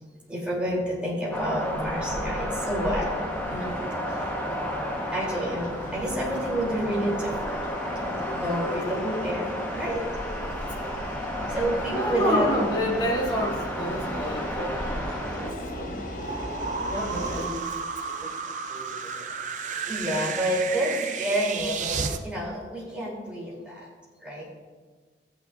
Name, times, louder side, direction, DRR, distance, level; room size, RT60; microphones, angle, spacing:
voice 1, 0.3-3.7 4.1-4.3 5.1-7.6 7.9-10.0 11.5-12.6 19.6-23.9 24.2-24.4, equal, 5° right, -6 dB, 3.5 m, -29 dB
sound 1, 1.3-15.5, equal, 10° left, 1.4 m, -32 dB
sound 2, 2.8-17.5, left 1 dB, 50° left, 1.0 m, -39 dB
voice 2, 4.2-4.5 10.6-11.1 11.9-16.0 16.4-17.7 18.0-18.3 18.7-19.3, equal, 25° left, -4 dB, 2.1 m, -30 dB
sound 3, 14.8-22.2, right 5 dB, 45° right, 0.5 m, -33 dB
15.0 x 9.2 x 2.7 m, 1.4 s
head